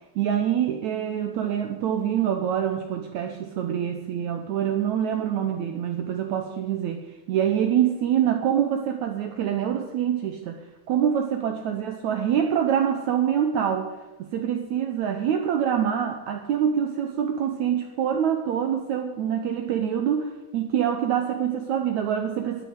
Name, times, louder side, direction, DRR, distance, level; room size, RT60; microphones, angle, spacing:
voice 1, 0.2-7.0 7.3-10.6 10.9-13.9 14.2-22.6, right 9 dB, 90° right, 4 dB, 1.6 m, -25 dB
12.0 x 9.4 x 8.0 m, 1.1 s
omnidirectional pair, 4.6 m